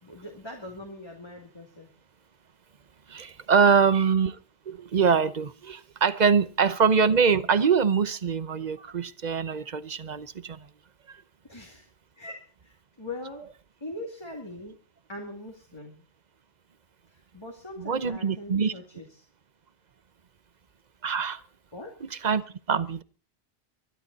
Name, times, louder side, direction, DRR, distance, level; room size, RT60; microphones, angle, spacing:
voice 1, 0.0-1.9 3.6-3.9 11.5-11.9 12.2-13.4 13.8-14.8 15.1-16.0 17.3-19.1 21.7-21.9, left 2 dB, 25° left, 2.6 m, -41 dB
voice 2, 3.1-4.4 4.7-10.7 11.1-11.2 17.8-18.7 21.0-21.4 22.0-23.0, right 6 dB, 45° right, 0.9 m, -24 dB
24.0 x 11.5 x 4.1 m
omnidirectional pair, 1.1 m